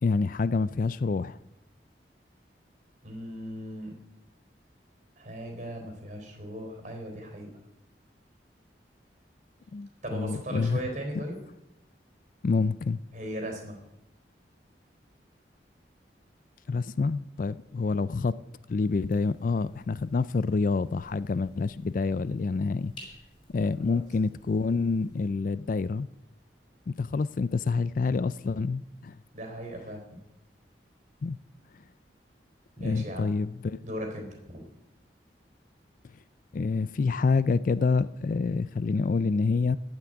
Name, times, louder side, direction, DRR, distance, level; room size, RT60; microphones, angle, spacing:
voice 1, 0.0-1.4 9.7-10.8 11.2-11.3 12.4-13.0 16.7-18.4 18.7-22.9 23.5-26.1 26.9-29.2 31.2-31.4 32.8-33.8 36.5-39.8, left 4 dB, 50° left, 0.4 m, -27 dB
voice 2, 3.0-3.9 5.2-7.5 10.0-11.4 13.1-13.8 23.8-24.0 29.3-30.0 32.8-33.3 33.8-34.6, equal, 45° right, 3.9 m, -37 dB
sound 1, 18.8-25.3, left 1 dB, 30° left, 4.6 m, -55 dB
14.5 x 6.0 x 10.0 m
head